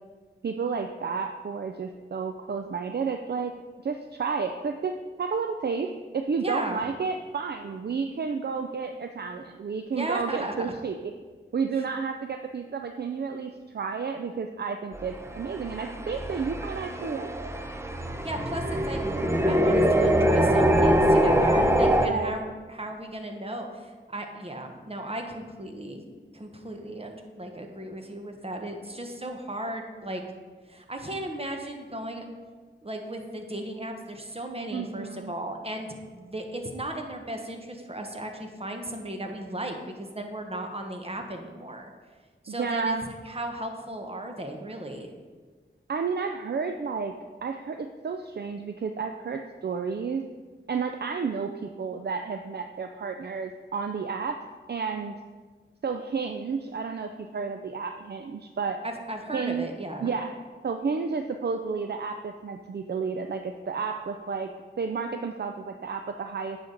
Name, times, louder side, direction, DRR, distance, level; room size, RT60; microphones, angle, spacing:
voice 1, 0.4-3.5 3.8-5.9 6.1-11.1 11.5-17.5 22.1-22.5 34.7-35.3 42.5-43.1 45.9-47.1 47.4-50.2 50.7-54.4 54.7-55.1 55.8-58.8 59.3-59.7 60.0-60.4 60.6-64.5 64.8-66.6, right 5 dB, 55° right, 6 dB, 0.4 m, -31 dB
voice 2, 6.4-6.8 9.9-10.7 18.2-19.0 19.5-26.0 26.3-30.2 30.7-32.2 32.8-41.9 42.4-42.9 43.2-45.1 58.8-60.1, right 1 dB, 30° right, 3 dB, 1.1 m, -36 dB
sound 1, 14.9-22.1, equal, 15° right, 0.7 m, -23 dB
8.5 x 5.9 x 3.9 m, 1.4 s
cardioid pair, 40°, 21 cm